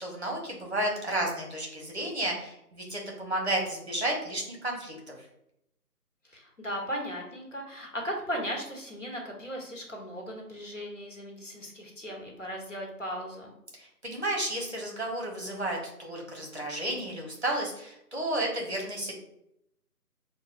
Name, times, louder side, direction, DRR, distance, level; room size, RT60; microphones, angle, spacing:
voice 1, 0.0-5.1 13.8-19.1, right 1 dB, 45° right, -1 dB, 1.0 m, -32 dB
voice 2, 6.3-13.5, equal, 50° left, -1 dB, 1.1 m, -37 dB
5.9 x 2.2 x 2.4 m, 0.80 s
figure-of-eight pair, 180°, 47 cm